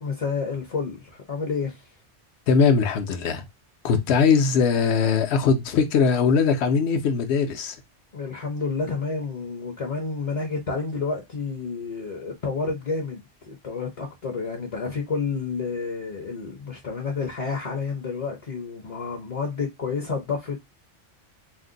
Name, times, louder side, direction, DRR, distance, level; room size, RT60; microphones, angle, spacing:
voice 1, 0.0-1.8 8.1-20.6, left 4 dB, 40° left, 0.6 m, -30 dB
voice 2, 2.5-3.4 3.8-7.8, left 5 dB, 65° left, 0.9 m, -20 dB
2.6 x 2.1 x 3.7 m
omnidirectional pair, 1.2 m